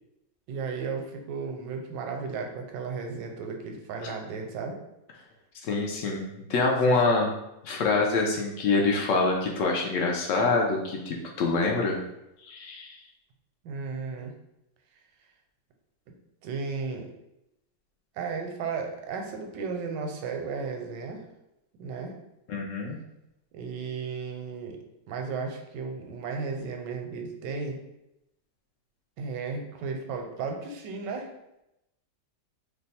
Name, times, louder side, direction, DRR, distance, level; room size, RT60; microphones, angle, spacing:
voice 1, 0.5-4.8 6.6-7.0 13.6-14.3 16.4-17.1 18.1-21.2 21.8-22.1 23.5-24.8 25.1-27.8 29.2-31.3, right 5 dB, 85° right, 3 dB, 1.2 m, -34 dB
voice 2, 5.6-7.3 7.6-12.0 12.4-13.0 22.5-23.0, left 3 dB, 75° left, 0 dB, 0.7 m, -25 dB
2.9 x 2.2 x 4.1 m, 0.87 s
omnidirectional pair, 1.9 m